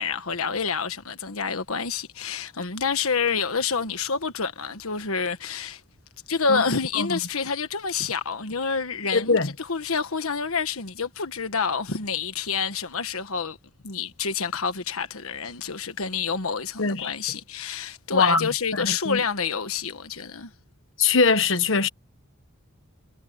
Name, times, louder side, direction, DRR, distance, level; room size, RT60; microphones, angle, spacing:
voice 1, 0.0-5.8 6.3-13.6 13.8-20.5, left 5 dB, 75° left, 1.4 m, -28 dB
voice 2, 9.1-9.5 16.8-17.1 18.1-19.2 21.0-21.9, left 4 dB, 60° left, 1.4 m, -22 dB
head